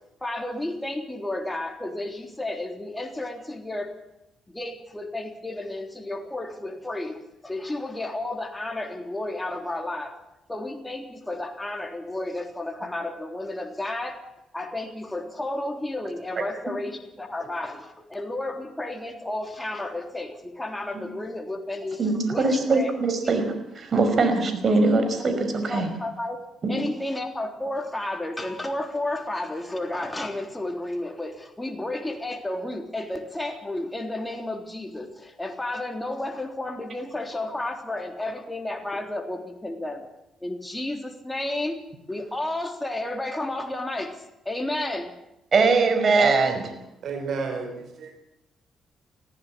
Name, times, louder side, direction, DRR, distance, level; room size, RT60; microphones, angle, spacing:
voice 1, 0.2-3.9 4.5-10.1 10.5-14.2 14.5-22.0 22.3-22.9 25.7-26.4 26.7-40.0 40.4-41.8 42.1-44.2 44.5-45.1, left 1 dB, 10° left, 3 dB, 3.4 m, -32 dB
voice 2, 22.0-25.9 26.6-26.8 45.5-46.7, right 3 dB, 45° right, 8 dB, 5.3 m, -22 dB
voice 3, 47.0-48.1, right 4 dB, 65° right, 5 dB, 4.4 m, -31 dB
21.0 x 15.0 x 8.6 m, 0.90 s
cardioid pair, 90°, 0 cm